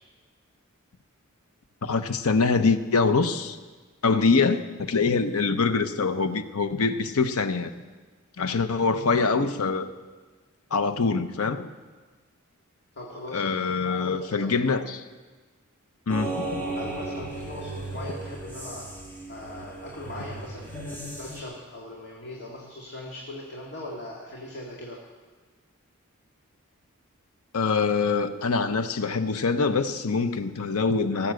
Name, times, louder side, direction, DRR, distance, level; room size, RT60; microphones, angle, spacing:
voice 1, 1.8-3.6 4.0-7.7 8.4-9.9 10.7-11.6 13.3-15.0 16.1-16.7 27.5-31.3, left 4 dB, 90° left, 0.8 m, -24 dB
voice 2, 12.9-14.6 16.8-18.9 19.3-25.0, left 1 dB, 55° left, 2.1 m, -40 dB
sound 1, 16.1-21.4, right 2 dB, 10° left, 2.1 m, -35 dB
18.0 x 7.3 x 7.7 m
head